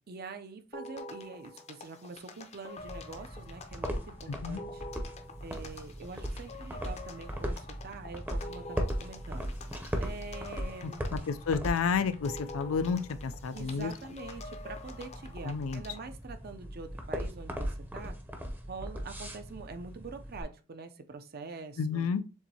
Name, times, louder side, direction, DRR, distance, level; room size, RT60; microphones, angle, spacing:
voice 1, 0.1-4.8 5.4-9.5 10.0-11.1 13.5-18.2 18.7-22.1, right 4 dB, 50° right, 0.5 m, -45 dB
sound 1, 0.7-16.1, left 3 dB, 30° left, 0.5 m, -47 dB
sound 2, 2.8-20.4, equal, 10° right, 0.6 m, -39 dB
voice 2, 11.1-13.9 15.4-15.8 21.8-22.2, left 5 dB, 90° left, 0.4 m, -30 dB
7.0 x 2.6 x 2.8 m
head